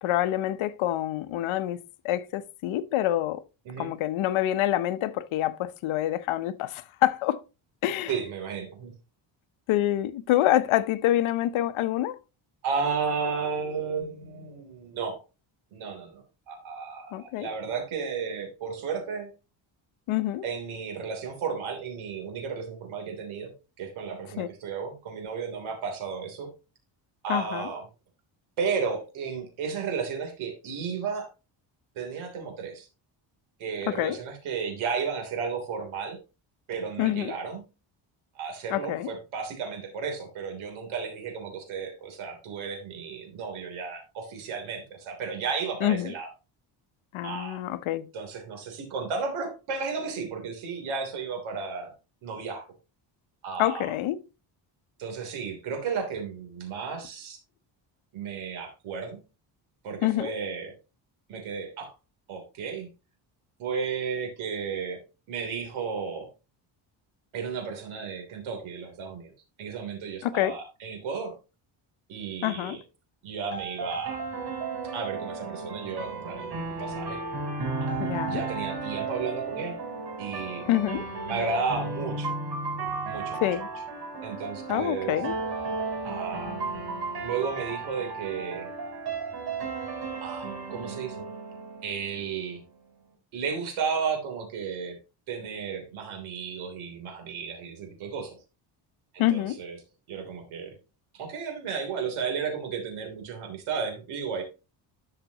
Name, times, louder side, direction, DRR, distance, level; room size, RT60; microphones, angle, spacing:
voice 1, 0.0-3.4 3.8-7.4 7.8-8.1 9.7-12.2 17.1-17.5 20.1-20.5 24.4-24.5 27.3-27.7 33.9-34.2 37.0-37.3 38.7-39.1 45.8-46.1 47.1-48.1 53.6-54.2 60.0-60.3 70.2-70.6 72.4-72.8 78.0-78.4 80.7-81.0 83.4-83.7 84.7-85.3 99.2-99.6, left 13 dB, 85° left, 0.8 m, -26 dB
voice 2, 8.1-8.9 12.6-15.2 15.7-19.3 20.4-23.5 23.8-26.5 27.2-27.8 28.6-31.3 31.9-32.9 33.6-36.2 36.7-37.6 38.3-46.3 47.2-47.6 48.1-51.9 52.2-52.6 53.4-53.9 55.0-57.4 58.1-59.2 59.8-60.7 61.3-61.9 62.3-62.9 63.6-65.0 65.3-66.3 67.3-69.3 69.6-71.3 72.1-72.8 73.2-74.2 74.9-76.5 76.8-77.2 77.8-79.8 80.2-80.6 81.2-82.3 83.0-83.5 84.2-85.1 86.0-86.6 87.2-88.7 90.2-91.3 91.8-92.6 93.3-95.0 95.3-98.4 99.1-99.8 100.1-100.7 101.1-104.4, right 5 dB, 90° right, 3.3 m, -33 dB
sound 1, 73.5-92.5, right 3 dB, 50° right, 4.3 m, -34 dB
12.5 x 5.9 x 2.9 m
cardioid pair, 130°, 47 cm